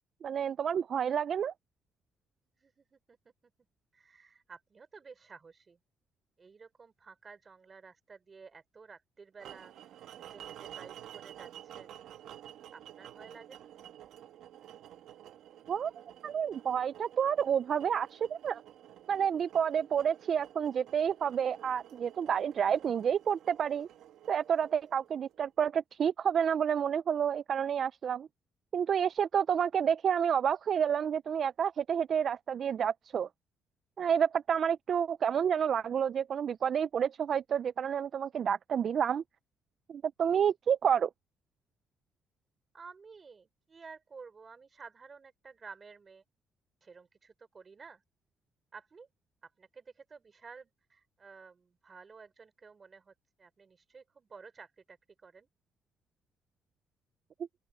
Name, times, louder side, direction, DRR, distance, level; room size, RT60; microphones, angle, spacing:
voice 1, 0.2-1.5 15.7-15.9 16.2-18.6 19.1-23.9 24.3-28.3 28.7-33.3 34.0-39.2 39.9-41.1, right 8 dB, 45° right, 0.3 m, -29 dB
voice 2, 2.6-3.2 3.9-5.8 6.4-9.7 10.1-12.1 12.7-13.7 42.7-46.2 46.8-48.0 48.7-49.1 49.4-55.0 55.2-55.5, right 5 dB, 30° right, 4.4 m, -53 dB
sound 1, 9.4-25.5, right 11 dB, 70° right, 1.5 m, -51 dB
open air
cardioid pair, 150°, 0 cm